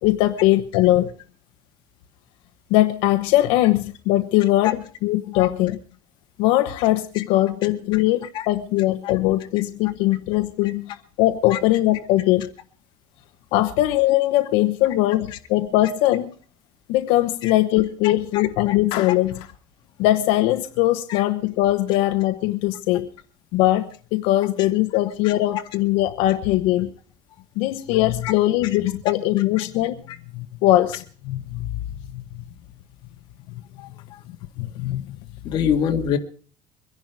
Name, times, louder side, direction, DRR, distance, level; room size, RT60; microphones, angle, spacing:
voice 1, 0.0-1.1 2.7-5.8 6.4-12.5 13.5-16.3 16.9-19.4 20.0-23.1 23.5-26.9 27.6-30.0 30.3-31.8 32.1-32.4 34.6-35.2, left 15 dB, 90° left, 8 dB, 1.0 m, -21 dB
voice 2, 18.0-18.7 21.1-21.2 24.6-24.7 25.2-25.6 27.3-27.4 28.2-28.3 30.1-30.2 33.8-34.2 35.4-36.2, left 8 dB, 55° left, 4 dB, 2.1 m, -27 dB
Clapping, 18.9-19.6, left 13 dB, 70° left, 2.1 m, -34 dB
24.0 x 11.0 x 4.7 m, 0.42 s
cardioid pair, 155°, 9 cm